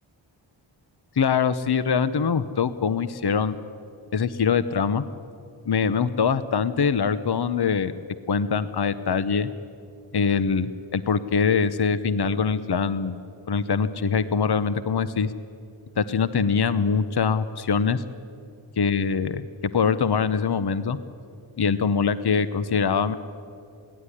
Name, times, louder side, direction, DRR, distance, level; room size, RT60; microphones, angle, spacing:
voice 1, 1.2-3.5 4.1-5.0 5.7-7.9 8.3-9.5 10.1-13.2 13.5-15.3 16.0-18.0 18.8-19.5 19.7-21.0 21.6-23.2, left 6 dB, 55° left, 13 dB, 0.8 m, -23 dB
21.5 x 16.5 x 10.0 m, 2.5 s
wide cardioid pair, 45°, 48 cm